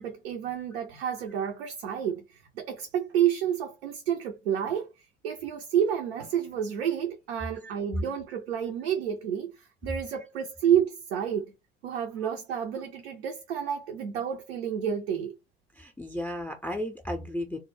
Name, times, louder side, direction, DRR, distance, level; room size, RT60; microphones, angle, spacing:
voice 1, 0.0-4.9 5.2-11.5 11.8-15.4, right 9 dB, 80° right, 0.5 m, -29 dB
voice 2, 15.8-17.6, left 1 dB, 5° left, 0.4 m, -34 dB
2.2 x 2.0 x 3.1 m
figure-of-eight pair, 60°, 30 cm